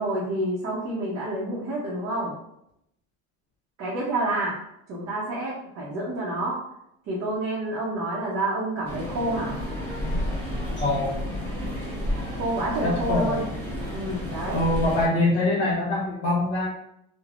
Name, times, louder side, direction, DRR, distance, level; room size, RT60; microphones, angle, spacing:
voice 1, 0.0-2.3 3.8-4.6 4.9-6.6 7.1-9.6 12.3-13.4 13.9-14.6, right 1 dB, 45° right, -6 dB, 0.7 m, -28 dB
sound 1, 8.8-15.1, equal, 5° left, 0.9 m, -31 dB
voice 2, 10.8-11.2 12.8-13.4 14.5-16.7, left 2 dB, 40° left, -6 dB, 1.0 m, -24 dB
3.2 x 2.1 x 2.4 m, 0.80 s
cardioid pair, 125°, 36 cm